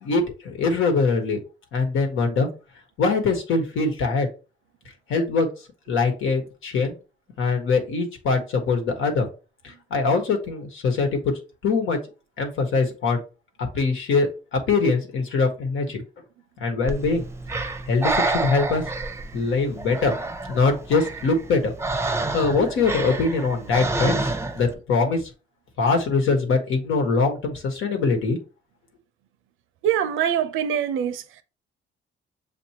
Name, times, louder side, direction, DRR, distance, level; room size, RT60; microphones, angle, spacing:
voice 1, 0.0-1.4 1.7-2.5 3.0-4.3 5.1-5.5 5.9-7.0 7.4-9.3 9.6-11.3 11.6-12.0 12.4-13.2 13.7-16.0 16.6-17.2 17.5-18.8 19.3-20.1 20.5-21.7 22.1-25.2 25.8-28.4, left 4 dB, 80° left, 1.4 m, -23 dB
Breathing, 16.9-24.7, right 2 dB, 15° right, 0.6 m, -29 dB
voice 2, 29.8-31.2, right 9 dB, 85° right, 0.6 m, -23 dB
6.9 x 2.6 x 2.9 m
cardioid pair, 90°, 20 cm